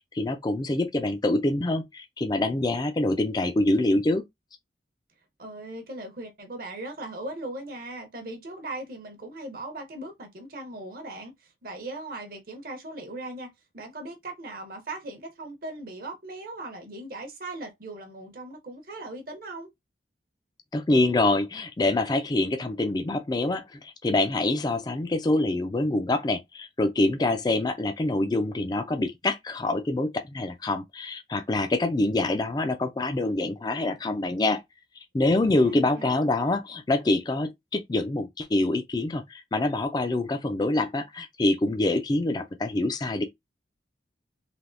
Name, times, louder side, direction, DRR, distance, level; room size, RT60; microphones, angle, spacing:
voice 1, 0.1-4.2 20.7-34.6 35.1-43.3, left 2 dB, 20° left, 0.4 m, -25 dB
voice 2, 5.4-19.7 35.5-36.2, right 2 dB, 50° right, 0.8 m, -39 dB
3.4 x 2.7 x 2.5 m
head